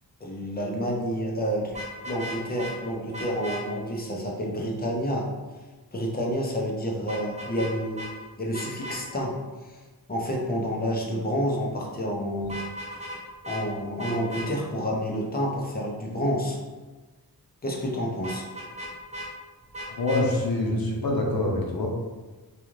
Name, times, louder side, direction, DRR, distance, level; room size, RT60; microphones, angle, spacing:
voice 1, 0.2-1.8 2.0-5.3 5.9-8.1 8.4-9.4 9.6-9.8 10.1-12.6 13.5-16.6 17.6-18.4, equal, 25° left, -1 dB, 0.5 m, -29 dB
Vehicle horn car horn honking, 1.7-2.7 3.1-3.6 7.1-7.7 8.0-8.1 8.5-9.0 12.4-13.2 13.4-13.6 14.0-14.5 18.2-19.3 19.7-20.2, equal, 15° right, 0.8 m, -36 dB
voice 2, 20.0-21.9, left 2 dB, 60° left, -2 dB, 0.8 m, -25 dB
2.4 x 2.3 x 3.1 m, 1.3 s
wide cardioid pair, 95°, 39 cm